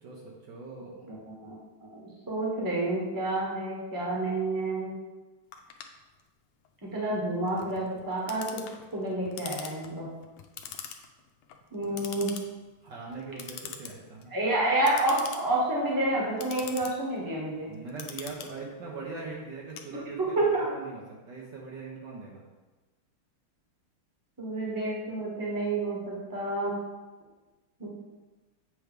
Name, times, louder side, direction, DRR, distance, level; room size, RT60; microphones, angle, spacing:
voice 1, 0.0-1.1 11.8-12.0 12.8-14.3 17.7-22.4, right 4 dB, 65° right, -3 dB, 1.4 m, -41 dB
voice 2, 1.1-1.6 1.9-4.9 6.8-8.6 8.9-10.1 11.7-12.3 14.3-17.7 20.2-20.7 24.4-26.7 27.8-27.9, right 2 dB, 10° right, -4 dB, 1.1 m, -29 dB
Clock, 5.5-20.5, left 8 dB, 85° left, 1.5 m, -45 dB
7.9 x 3.1 x 5.1 m, 1.2 s
omnidirectional pair, 2.4 m